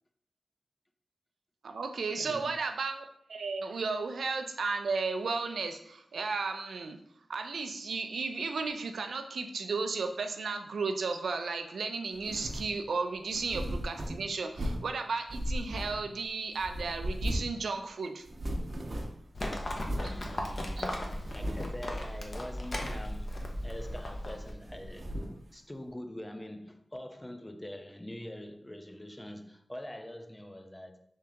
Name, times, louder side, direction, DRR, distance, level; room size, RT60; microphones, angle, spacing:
voice 1, 1.6-3.0 3.3-7.0 7.3-18.2 20.8-20.9, right 4 dB, 90° right, 0.3 m, -34 dB
voice 2, 2.2-2.6 20.0-21.0 21.3-23.3 23.6-25.2 25.5-31.0, left 1 dB, 20° left, 0.4 m, -44 dB
sound 1, 12.2-12.8 13.3-14.9 15.3-16.3 16.6-17.6 17.9-18.0 18.2-19.3 19.8-20.2 20.6-20.7 21.2-21.8 22.6-23.1 23.4-24.2 24.6-25.4, equal, 55° right, 0.6 m, -37 dB
Livestock farm animals working animals, 19.3-24.5, left 1 dB, 60° left, 0.7 m, -36 dB
3.6 x 2.8 x 3.4 m
cardioid pair, 45°, 0 cm